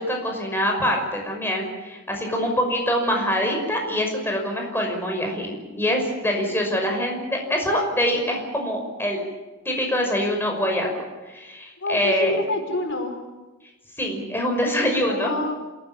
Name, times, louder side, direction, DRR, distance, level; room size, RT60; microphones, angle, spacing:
voice 1, 0.0-9.2 9.6-10.9 11.3-12.4 14.0-15.4, equal, 10° left, 2 dB, 5.8 m, -24 dB
voice 2, 2.3-2.6 6.9-7.1 11.8-13.1 15.1-15.5, left 1 dB, 65° left, 4 dB, 5.0 m, -28 dB
27.5 x 18.0 x 8.7 m, 1.2 s
head